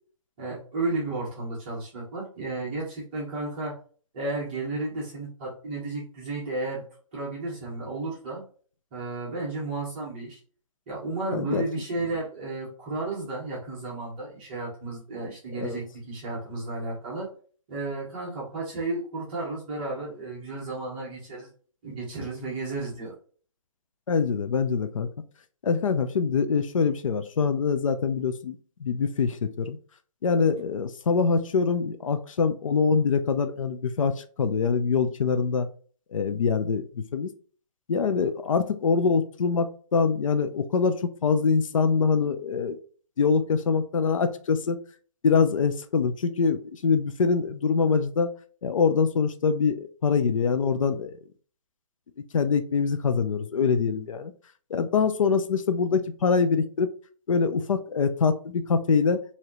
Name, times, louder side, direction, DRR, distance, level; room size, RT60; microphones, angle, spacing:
voice 1, 0.4-3.7 4.1-6.8 7.1-8.4 8.9-10.4 10.9-17.3 17.7-21.5 21.8-23.1, right 2 dB, 20° right, -6 dB, 1.1 m, -33 dB
voice 2, 11.3-11.7 15.5-15.8 24.1-25.1 25.6-29.8 30.2-35.7 36.1-37.3 37.9-42.8 43.2-44.8 45.2-48.3 48.6-51.2 52.3-54.3 54.7-56.9 57.3-59.2, left 5 dB, 70° left, 9 dB, 0.6 m, -24 dB
4.9 x 2.8 x 3.0 m, 0.42 s
hypercardioid pair, 175°, 17 cm